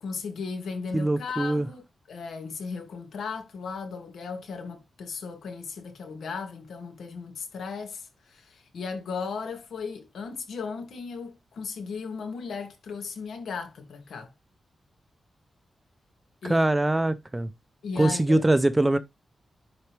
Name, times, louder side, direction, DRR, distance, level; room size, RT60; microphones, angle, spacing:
voice 1, 0.0-14.3 16.4-16.7 17.8-18.4, left 5 dB, 80° left, 2.6 m, -36 dB
voice 2, 0.9-1.7 16.4-17.5 18.0-19.0, right 1 dB, 15° right, 0.7 m, -23 dB
10.5 x 4.3 x 3.4 m
wide cardioid pair, 145°, 0 cm